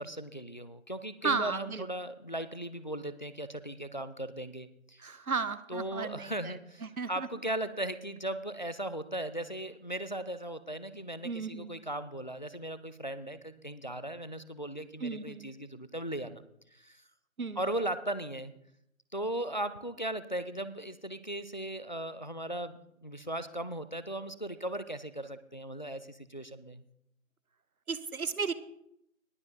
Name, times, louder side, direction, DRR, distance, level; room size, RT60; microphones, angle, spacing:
voice 1, 0.0-5.2 5.7-16.4 16.7-17.0 17.6-18.5 19.1-26.8, right 1 dB, 35° left, 13 dB, 0.5 m, -37 dB
voice 2, 1.2-1.8 5.0-6.6 7.0-7.3 11.2-11.8 15.0-15.5 17.4-17.6 27.9-28.5, right 5 dB, 90° right, 14 dB, 1.0 m, -34 dB
19.5 x 7.0 x 3.8 m, 0.75 s
figure-of-eight pair, 160°, 42 cm